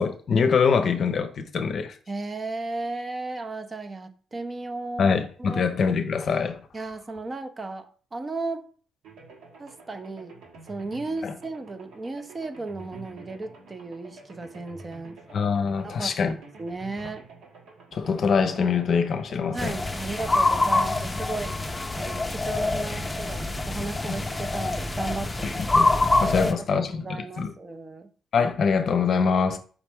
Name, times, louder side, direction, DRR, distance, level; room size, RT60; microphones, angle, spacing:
voice 1, 0.0-1.9 5.0-6.6 11.2-11.3 15.3-16.3 17.9-19.7 25.6-27.5 28.3-29.6, left 5 dB, 55° left, 0.6 m, -24 dB
voice 2, 2.1-5.6 6.7-8.7 9.6-10.4 10.7-15.2 15.8-17.2 19.5-21.6 21.9-25.6 26.3-28.1, right 3 dB, 30° right, 0.5 m, -35 dB
sound 1, 9.0-26.0, right 3 dB, 80° right, 1.5 m, -48 dB
sound 2, 19.6-26.5, left 2 dB, 15° left, 0.5 m, -25 dB
5.0 x 3.1 x 3.5 m
cardioid pair, 90°, 0 cm